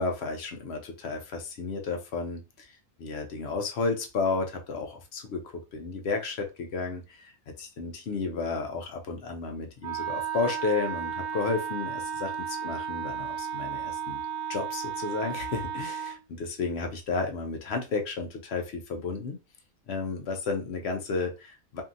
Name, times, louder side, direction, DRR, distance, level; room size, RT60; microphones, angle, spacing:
voice 1, 0.0-2.7 3.0-7.3 7.6-14.2 14.5-19.4 19.9-21.8, left 4 dB, 65° left, 3 dB, 0.7 m, -32 dB
Wind instrument woodwind instrument, 9.8-16.2, right 9 dB, 75° right, 1.0 m, -34 dB
2.7 x 2.7 x 2.4 m, 0.28 s
omnidirectional pair, 1.5 m